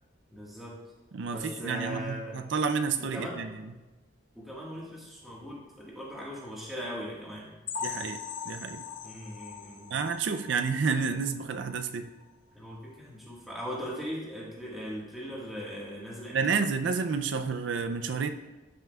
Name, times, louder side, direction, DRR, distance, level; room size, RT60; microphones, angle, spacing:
voice 1, 0.3-0.8 1.3-2.4 3.0-3.4 4.3-7.5 9.0-10.0 12.5-16.5, equal, ahead, -5 dB, 1.5 m, -39 dB
voice 2, 1.1-3.7 7.8-8.2 8.5-8.8 9.9-12.1 16.3-18.3, right 5 dB, 65° right, 8 dB, 0.4 m, -30 dB
sound 1, 7.7-11.3 11.7-11.8 12.2-12.3 12.8-12.9, left 6 dB, 70° left, 0.7 m, -40 dB
12.0 x 5.7 x 2.3 m, 1.1 s
head